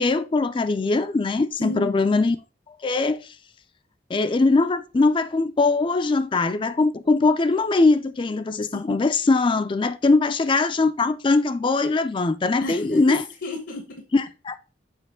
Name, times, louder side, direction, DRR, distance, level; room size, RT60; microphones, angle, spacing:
voice 1, 0.0-2.4 2.8-3.2 4.1-13.2 14.1-14.6, left 3 dB, 30° left, 0.4 m, -21 dB
voice 2, 1.6-2.0 8.7-9.0 12.6-14.0, left 1 dB, 80° left, 1.2 m, -33 dB
6.8 x 5.2 x 3.6 m
head